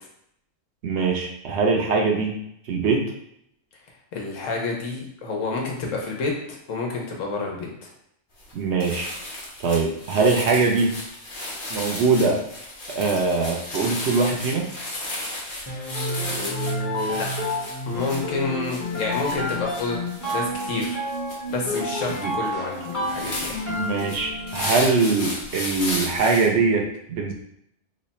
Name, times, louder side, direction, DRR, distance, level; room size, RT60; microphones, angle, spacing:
voice 1, 0.8-2.4 2.7-3.1 8.5-9.1 9.6-10.9 11.7-12.4 12.9-14.7 22.2-22.3 23.7-27.3, right 4 dB, 65° right, 1 dB, 0.8 m, -22 dB
voice 2, 4.1-7.9 16.2-17.3 17.9-20.0 20.3-21.0 21.5-23.6, left 3 dB, 90° left, 0 dB, 1.2 m, -29 dB
sound 1, 8.4-8.5 8.8-26.5, left 1 dB, 45° left, 1.1 m, -34 dB
sound 2, 15.7-24.8, left 1 dB, 15° left, 0.7 m, -30 dB
3.1 x 2.2 x 4.0 m, 0.75 s
omnidirectional pair, 1.3 m